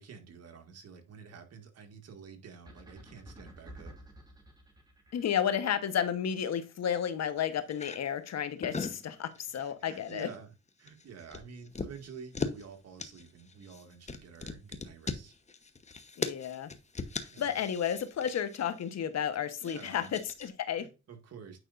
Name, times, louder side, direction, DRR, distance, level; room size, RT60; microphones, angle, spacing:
voice 1, 0.0-3.9 8.7-8.8 9.6-10.5 10.8-15.3 17.3-17.6 19.6-20.1 20.4-20.5 20.8-21.6, right 6 dB, 55° right, 6 dB, 1.8 m, -49 dB
sound 1, 2.7-6.1, right 1 dB, 15° right, 2.5 m, -51 dB
voice 2, 5.1-10.3 16.2-16.7 17.4-20.9, left 8 dB, 60° left, 11 dB, 1.1 m, -32 dB
sound 2, 7.7-8.0 8.4-9.0 9.3-9.7 10.0-10.3 10.7-12.7 13.0-19.0 19.6-20.5, left 4 dB, 25° left, 0.9 m, -39 dB
9.1 x 5.3 x 2.5 m, 0.29 s
cardioid pair, 90°, 30 cm